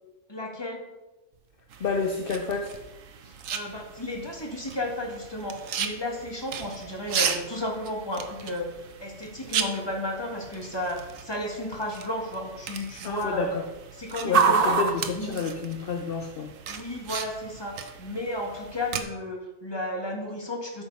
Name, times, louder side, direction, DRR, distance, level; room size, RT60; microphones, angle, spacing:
voice 1, 0.3-0.9 3.2-8.7 9.0-13.5 14.0-14.7 15.1-15.4 16.7-20.8, left 1 dB, 20° left, 0 dB, 1.9 m, -33 dB
sound 1, 1.3-16.2, right 5 dB, 50° right, 0.9 m, -34 dB
sound 2, 1.7-19.0, right 7 dB, 70° right, 1.2 m, -37 dB
voice 2, 1.8-2.8 13.0-13.6 14.2-16.5, left 5 dB, 50° left, 5 dB, 0.8 m, -29 dB
13.0 x 5.4 x 5.4 m, 1.1 s
omnidirectional pair, 1.4 m